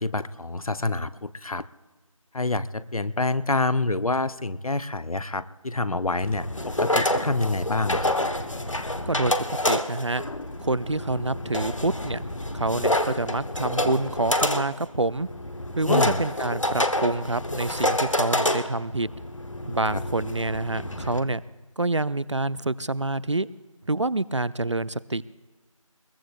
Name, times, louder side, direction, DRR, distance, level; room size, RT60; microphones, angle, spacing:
voice 1, 0.0-1.6 2.3-8.2 15.9-16.2 19.9-20.0, left 2 dB, 80° left, 15 dB, 0.7 m, -27 dB
sound 1, 6.2-21.2, left 1 dB, 65° left, 1.0 m, -28 dB
voice 2, 9.7-10.2 10.6-12.2 12.5-15.3 15.8-19.1 19.7-21.4 21.8-23.5 23.9-25.2, right 2 dB, 55° right, 20 dB, 0.4 m, -27 dB
21.5 x 20.5 x 2.4 m, 1.2 s
figure-of-eight pair, 180°, 18 cm